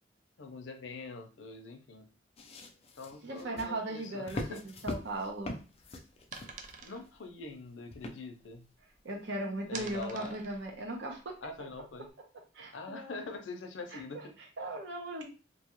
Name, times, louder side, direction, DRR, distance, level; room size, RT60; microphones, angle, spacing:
voice 1, 0.4-2.1 3.0-4.6 6.8-8.7 9.7-10.4 11.4-12.1 12.7-14.4, left 3 dB, 80° left, 6 dB, 0.5 m, -44 dB
sound 1, 2.4-7.1 7.9-8.5 9.1-9.2, left 1 dB, 35° left, 0.4 m, -42 dB
voice 2, 3.2-5.6 9.0-11.4 12.5-13.2 13.9-14.0 14.6-15.3, right 1 dB, 70° right, 1 dB, 0.8 m, -38 dB
sound 2, 5.1-9.1 9.4-12.1, right 5 dB, 45° right, 0.4 m, -49 dB
2.6 x 2.3 x 3.0 m, 0.34 s
head